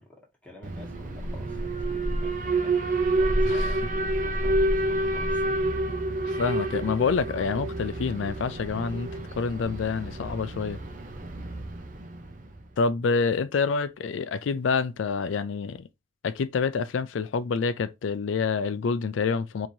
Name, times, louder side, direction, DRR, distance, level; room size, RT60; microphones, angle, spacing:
voice 1, 0.0-5.4 11.3-11.7, left 1 dB, 5° left, 1.3 m, -48 dB
Alarm, 0.6-12.6, right 1 dB, 45° right, 0.7 m, -28 dB
voice 2, 6.3-9.1 9.4-10.8 12.8-15.9 16.2-19.7, left 5 dB, 85° left, 0.4 m, -27 dB
4.4 x 2.8 x 2.7 m
head